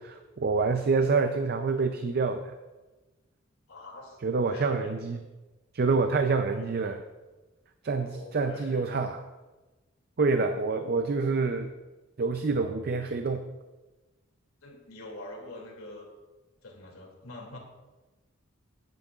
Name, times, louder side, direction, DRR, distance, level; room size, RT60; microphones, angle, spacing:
voice 1, 0.0-2.5 4.2-5.2 5.7-6.9 7.8-9.2 10.2-11.7 12.2-13.4, right 4 dB, 45° right, 7 dB, 0.5 m, -27 dB
voice 2, 3.7-4.2 4.5-4.9 6.2-7.0 8.0-8.9 14.6-16.1 16.6-17.6, left 2 dB, 80° left, -1 dB, 2.5 m, -45 dB
14.0 x 9.3 x 2.4 m, 1.2 s
head